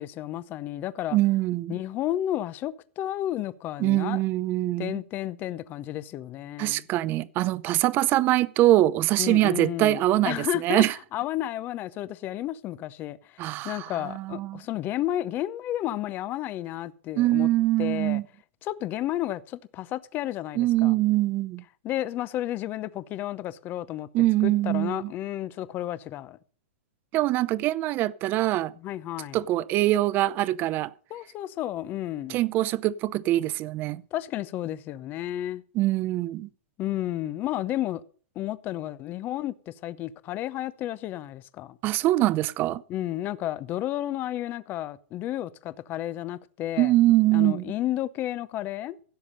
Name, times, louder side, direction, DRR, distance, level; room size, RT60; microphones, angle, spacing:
voice 1, 0.0-1.2 1.7-4.2 4.8-6.9 9.2-10.8 11.1-17.5 17.8-18.2 18.6-21.0 21.8-24.1 24.4-26.4 28.8-29.4 31.1-32.4 34.1-35.6 36.8-38.0 38.4-41.8 42.9-46.9 47.3-49.0, left 13 dB, 25° left, 0.7 m, -32 dB
voice 2, 1.1-1.8 3.8-5.0 6.6-10.9 13.4-14.6 17.2-18.2 20.6-21.6 24.1-25.1 27.1-28.7 29.3-30.9 32.3-34.0 35.7-36.5 41.8-42.8 46.8-47.6, right 16 dB, 30° right, 0.6 m, -23 dB
16.0 x 7.2 x 6.5 m
hypercardioid pair, 150°, 7 cm